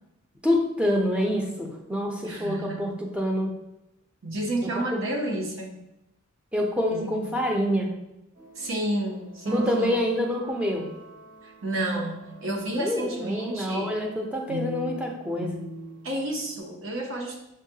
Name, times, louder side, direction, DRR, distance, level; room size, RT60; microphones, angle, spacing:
voice 1, 0.4-3.5 4.6-4.7 6.5-7.9 9.5-10.9 12.8-15.5, left 1 dB, 5° right, 0 dB, 0.5 m, -26 dB
voice 2, 2.2-2.8 4.2-5.8 6.9-7.2 8.6-10.0 11.4-13.9 16.0-17.4, right 1 dB, 70° right, 0 dB, 0.8 m, -31 dB
sound 1, 8.4-12.7 14.5-16.6, right 1 dB, 40° right, 0.8 m, -37 dB
6.2 x 2.2 x 2.7 m, 0.89 s
head